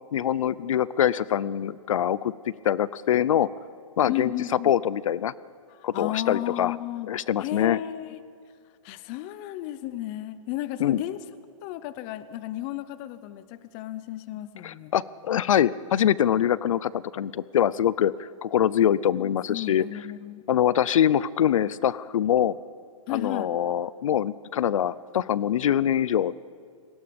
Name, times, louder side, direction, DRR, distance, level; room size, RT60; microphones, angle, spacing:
voice 1, 0.1-2.3 2.6-3.5 4.0-4.3 4.6-5.3 5.8-6.7 7.1-7.8 10.8-11.0 14.6-19.8 20.5-22.6 23.1-26.3, left 10 dB, 65° left, 20 dB, 0.5 m, -24 dB
voice 2, 4.1-4.7 5.7-7.1 7.4-8.2 8.8-11.2 11.6-14.9 19.1-20.4 23.1-23.5, left 14 dB, 20° left, 14 dB, 0.5 m, -33 dB
28.5 x 19.5 x 5.2 m, 2.2 s
hypercardioid pair, 165°, 18 cm